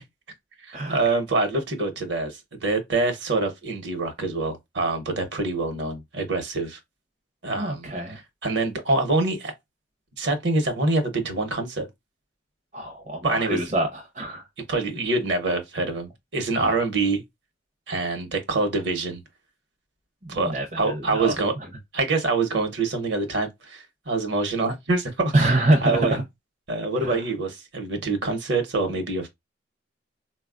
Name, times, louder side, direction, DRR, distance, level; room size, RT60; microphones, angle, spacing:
voice 1, 0.6-6.8 7.4-7.9 8.4-9.5 10.2-11.9 13.2-13.6 14.7-17.2 17.9-19.2 20.3-21.5 21.9-25.5 25.8-26.2 26.7-29.3, right 3 dB, 60° right, 0.9 m, -25 dB
voice 2, 7.5-8.2 12.7-14.4 16.6-16.8 20.2-21.3 25.3-26.2 27.0-27.2, right 1 dB, 35° right, 0.6 m, -25 dB
4.0 x 2.3 x 2.3 m
head